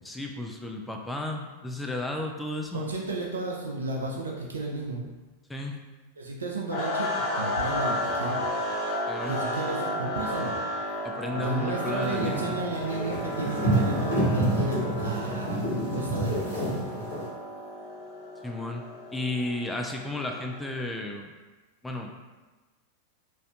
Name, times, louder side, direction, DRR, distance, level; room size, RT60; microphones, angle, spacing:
voice 1, 0.0-2.9 5.5-5.8 9.1-9.4 11.0-12.6 18.4-21.3 21.8-22.1, left 2 dB, 5° left, 1 dB, 0.3 m, -33 dB
voice 2, 2.7-5.0 6.2-8.4 9.3-10.6 11.3-15.6 15.9-16.7, right 2 dB, 75° right, -1 dB, 0.4 m, -33 dB
sound 1, 6.7-20.8, left 1 dB, 40° left, 0.6 m, -33 dB
sound 2, 12.0-17.3, right 1 dB, 65° left, 1.3 m, -28 dB
3.1 x 2.6 x 2.5 m, 1.2 s
figure-of-eight pair, 90°, 0 cm